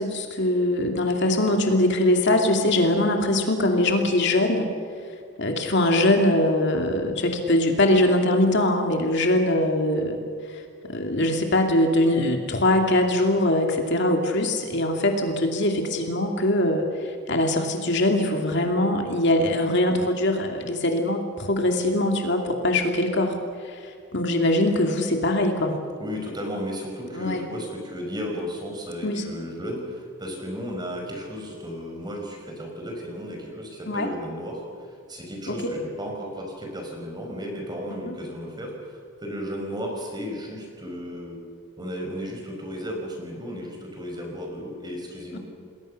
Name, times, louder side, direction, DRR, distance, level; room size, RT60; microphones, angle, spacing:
voice 1, 0.0-4.7 5.4-10.2 10.5-10.6 10.9-23.4 23.6-25.8 27.1-27.5 29.0-29.2 33.9-34.1 35.5-35.6 37.9-38.1 45.3-45.4, left 1 dB, 50° left, 3 dB, 2.7 m, -22 dB
voice 2, 26.0-41.4 41.8-45.4, equal, 20° right, 1 dB, 5.6 m, -34 dB
29.0 x 21.0 x 6.8 m, 2.3 s
head